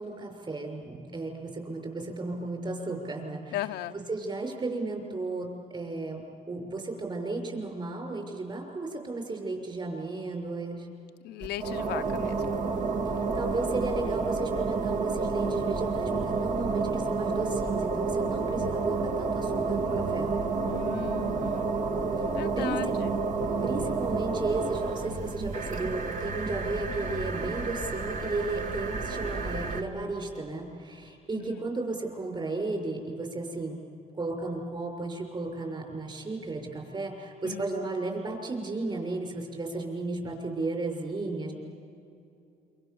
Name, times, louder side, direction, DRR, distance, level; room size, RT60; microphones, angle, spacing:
voice 1, 0.0-3.6 3.9-10.9 13.3-20.3 22.6-22.8 23.6-33.8 34.1-41.5, right 3 dB, 30° right, 3 dB, 6.2 m, -34 dB
voice 2, 3.5-4.0 11.2-12.5 20.7-21.8 22.3-23.2 31.3-31.7 37.4-37.7, left 13 dB, 80° left, 8 dB, 0.8 m, -37 dB
sound 1, 11.4-29.8, right 4 dB, 50° right, 2.0 m, -30 dB
27.5 x 25.0 x 7.1 m, 2.6 s
cardioid pair, 110°, 17 cm